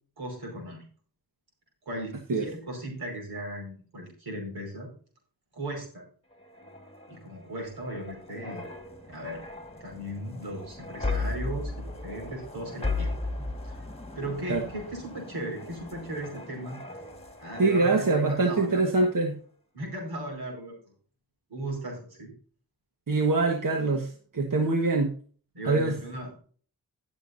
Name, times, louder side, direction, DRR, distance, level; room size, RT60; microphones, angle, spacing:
voice 1, 0.2-0.8 1.9-4.9 5.5-6.0 7.1-8.6 9.1-9.4 9.8-13.8 14.2-16.8 17.4-18.8 19.7-20.7 21.5-22.3 23.1-23.2 25.5-26.4, right 1 dB, 85° right, 0 dB, 5.2 m, -37 dB
sound 1, 6.3-18.6 19.0-19.2, left 3 dB, 15° left, 1.8 m, -37 dB
voice 2, 17.6-19.3 23.1-25.1 25.6-26.0, right 3 dB, 60° right, 3 dB, 1.6 m, -24 dB
17.5 x 7.1 x 2.7 m, 0.43 s
cardioid pair, 50°, 37 cm